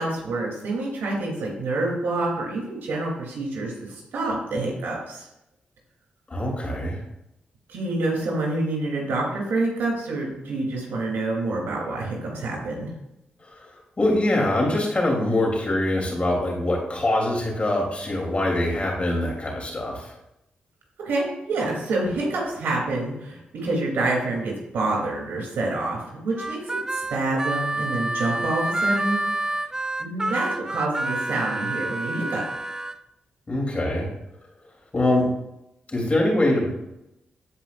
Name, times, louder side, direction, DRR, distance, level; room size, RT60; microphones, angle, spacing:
voice 1, 0.0-5.3 7.7-12.9 21.0-29.6 30.0-32.4, right 2 dB, 80° right, -2 dB, 3.2 m, -27 dB
voice 2, 6.3-7.0 14.0-20.1 33.5-34.1 34.9-35.3 35.9-36.7, left 1 dB, 35° left, -1 dB, 3.4 m, -23 dB
Harmonica, 26.4-32.9, right 2 dB, 20° right, 0.5 m, -28 dB
15.0 x 5.0 x 2.6 m, 0.84 s
supercardioid pair, 55°, 3 cm